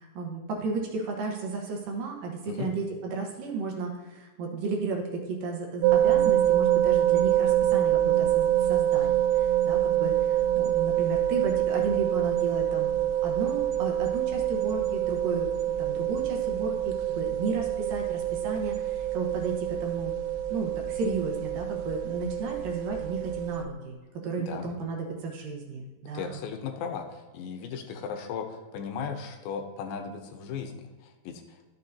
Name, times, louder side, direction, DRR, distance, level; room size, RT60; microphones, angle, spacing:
voice 1, 0.0-12.9 13.2-20.1 20.5-23.9 24.2-26.4, right 4 dB, 70° right, 1 dB, 2.6 m, -33 dB
sound 1, 5.8-23.6, right 12 dB, 90° right, 2.5 m, -26 dB
voice 2, 26.1-31.6, left 6 dB, 75° left, 5 dB, 2.5 m, -36 dB
13.0 x 6.6 x 2.7 m, 1.3 s
omnidirectional pair, 4.4 m